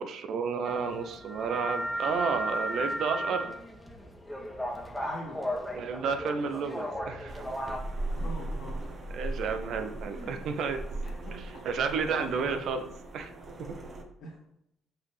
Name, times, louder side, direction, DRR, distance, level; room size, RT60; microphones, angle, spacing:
voice 1, 0.0-3.6 5.7-7.4 9.1-10.8 11.3-12.9 13.1-13.3 13.6-13.7, right 5 dB, 60° right, 8 dB, 0.6 m, -31 dB
sound 1, 0.7-7.8, equal, 5° left, 1.4 m, -35 dB
voice 2, 5.0-5.5 8.1-8.9 10.1-10.3 11.1-11.4 11.8-12.5 14.2-14.4, equal, 65° left, -2 dB, 2.0 m, -44 dB
sound 2, 7.3-14.0, right 2 dB, 40° right, 1.1 m, -38 dB
5.7 x 5.7 x 3.4 m, 0.81 s
hypercardioid pair, 50°, 0 cm